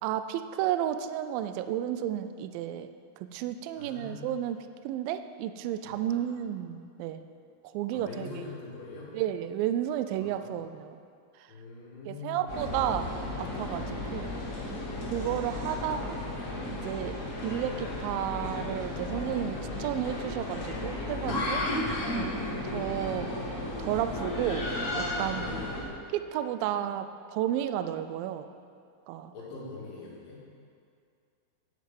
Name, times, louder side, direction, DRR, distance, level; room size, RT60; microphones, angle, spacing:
voice 1, 0.0-4.6 4.8-7.3 7.6-8.3 9.1-11.0 11.4-11.5 12.1-13.1 13.4-14.3 15.1-16.2 16.7-17.2 17.4-21.6 22.2-22.3 22.6-23.3 23.8-24.7 24.9-25.5 26.1-28.5 29.1-29.3, right 11 dB, 85° right, 10 dB, 2.0 m, -32 dB
voice 2, 3.8-4.3 5.8-6.2 7.9-9.2 10.1-10.5 11.5-12.5 15.0-15.6 25.3-25.6 29.3-30.5, left 3 dB, 65° left, -5 dB, 3.6 m, -43 dB
sound 1, 12.5-25.8, left 1 dB, 30° left, 1.6 m, -34 dB
11.0 x 8.1 x 5.4 m, 2.4 s
omnidirectional pair, 4.6 m